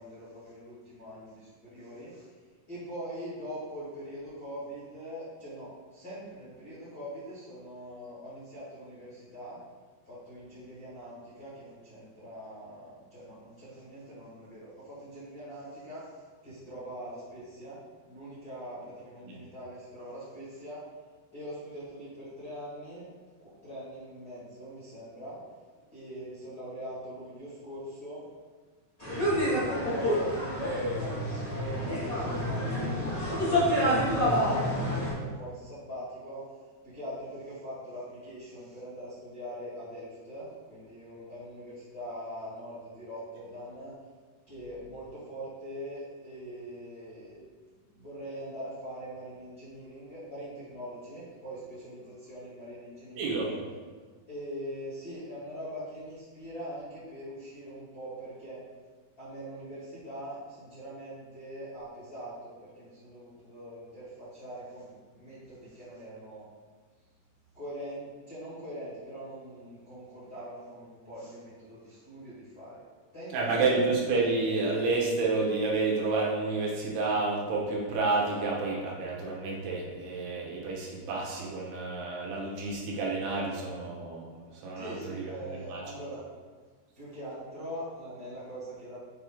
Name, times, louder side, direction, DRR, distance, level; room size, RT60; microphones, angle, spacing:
voice 1, 0.0-2.3 2.7-9.6 10.0-16.1 16.4-17.8 18.1-20.8 21.3-23.1 23.4-25.4 25.9-28.2 29.2-30.5 31.0-33.1 33.4-36.4 36.8-43.9 44.5-47.4 47.9-53.5 54.3-58.6 59.2-66.4 67.5-72.8 73.1-73.7 84.7-86.2 87.0-89.0, equal, 35° left, -11 dB, 1.8 m, -42 dB
sound 1, 29.0-35.1, equal, 65° left, 0.4 m, -28 dB
voice 2, 53.2-53.5 73.3-84.4 84.6-85.3 85.7-85.8, right 3 dB, 75° right, -3 dB, 3.1 m, -29 dB
7.6 x 4.8 x 3.9 m, 1.4 s
omnidirectional pair, 4.7 m